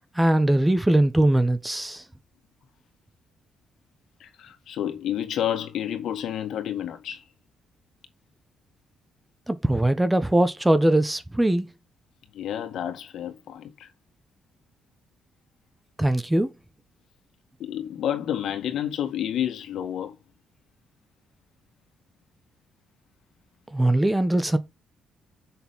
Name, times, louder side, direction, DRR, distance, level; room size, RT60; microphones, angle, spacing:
voice 1, 0.1-2.0 9.5-11.7 16.0-16.5 23.7-24.6, right 1 dB, 10° right, 1.2 m, -21 dB
voice 2, 4.2-7.2 12.3-13.9 17.6-20.2, left 10 dB, 75° left, 2.0 m, -30 dB
7.4 x 6.8 x 3.7 m
cardioid pair, 90°, 0 cm